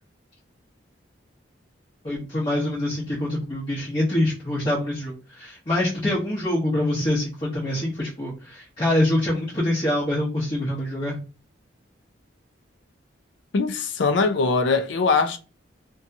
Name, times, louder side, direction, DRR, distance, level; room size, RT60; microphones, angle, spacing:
voice 1, 2.0-11.2, left 1 dB, 25° left, 0.8 m, -25 dB
voice 2, 13.5-15.4, left 4 dB, 70° left, 0.4 m, -21 dB
2.7 x 2.3 x 2.5 m
head